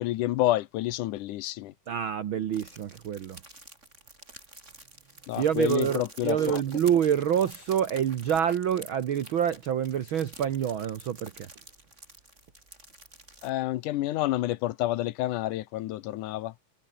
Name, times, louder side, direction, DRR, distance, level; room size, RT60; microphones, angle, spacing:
voice 1, 0.0-1.7 5.3-6.6 13.4-16.5, left 15 dB, 75° left, 2.2 m, -29 dB
voice 2, 1.9-3.4 5.4-11.5, right 9 dB, 85° right, 1.1 m, -27 dB
sound 1, 2.5-13.5, right 2 dB, 20° right, 7.5 m, -49 dB
omnidirectional pair, 3.9 m